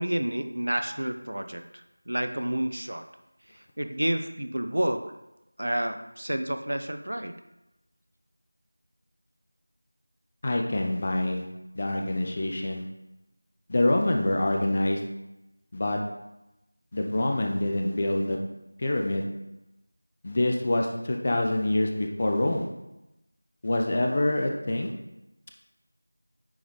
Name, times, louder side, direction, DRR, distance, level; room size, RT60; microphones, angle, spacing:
voice 1, 0.0-1.6 2.1-3.1 3.8-5.1 5.6-7.3, right 1 dB, 60° right, 8 dB, 0.6 m, -29 dB
voice 2, 10.4-11.4 11.8-12.8 13.7-15.0 15.7-16.0 16.9-18.4 18.8-19.3 20.2-22.7 23.6-24.9, left 1 dB, 30° left, 2 dB, 0.5 m, -26 dB
9.3 x 4.0 x 3.3 m, 0.93 s
figure-of-eight pair, 170°, 0 cm